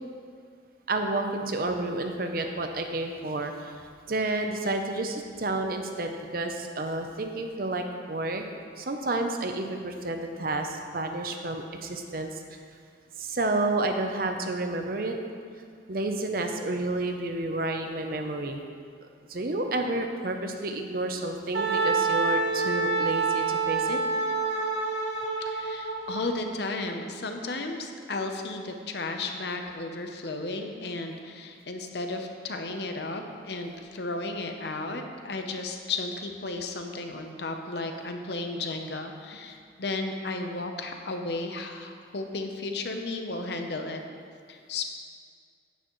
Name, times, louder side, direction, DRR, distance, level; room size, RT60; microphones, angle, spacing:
voice 1, 0.9-3.7 4.1-8.4 8.8-12.6 13.2-15.2 15.9-18.6 19.3-24.0, right 2 dB, 50° right, 5 dB, 0.7 m, -30 dB
Wind instrument woodwind instrument, 21.5-26.2, right 4 dB, 70° right, 1.4 m, -27 dB
voice 2, 25.4-44.0 44.5-44.8, left 3 dB, 65° left, 4 dB, 0.8 m, -34 dB
9.9 x 9.1 x 3.1 m, 2.2 s
head